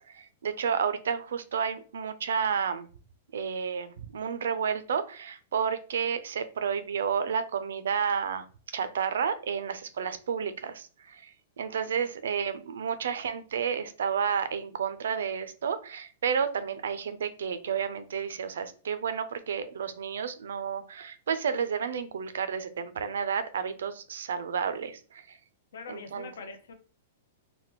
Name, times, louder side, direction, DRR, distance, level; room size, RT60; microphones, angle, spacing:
voice 1, 0.0-2.9 3.3-8.5 8.7-25.2 25.9-26.3, right 7 dB, 85° right, 12 dB, 0.3 m, -31 dB
voice 2, 25.7-26.7, left 5 dB, 85° left, 6 dB, 0.6 m, -43 dB
3.3 x 2.1 x 2.8 m, 0.39 s
supercardioid pair, 180°, 0 cm